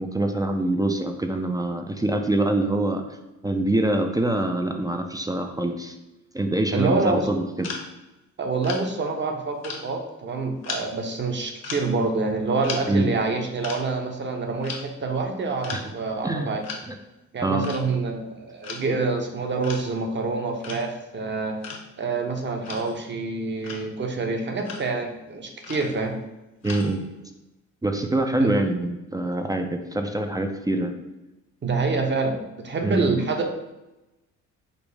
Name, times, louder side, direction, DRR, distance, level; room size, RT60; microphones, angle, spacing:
voice 1, 0.0-3.0 3.4-6.0 6.3-7.7 12.9-13.1 15.7-15.9 16.2-16.5 16.9-17.0 17.4-17.7 26.6-27.0 27.8-31.0 32.8-33.2, right 1 dB, 10° right, 5 dB, 0.4 m, -25 dB
voice 2, 6.7-7.3 8.4-16.6 17.3-21.6 22.0-26.1 28.4-28.6 31.6-32.3 32.6-33.5, right 3 dB, 40° right, 4 dB, 0.8 m, -26 dB
sound 1, 7.6-7.9 8.6-8.9 9.6-10.2 10.6-11.0 11.6-12.0 12.6-12.9 13.6-13.8 14.6-14.9 15.6-15.8 16.6-16.8 17.6-17.9 18.6-18.9 19.6-20.0 20.6-20.9 21.6-21.9 22.6-23.1 23.6-23.9 24.6-25.0 25.6-26.2 26.6-27.1, left 5 dB, 60° left, 1.0 m, -36 dB
5.2 x 2.0 x 4.7 m, 1.0 s
cardioid pair, 90°, 30 cm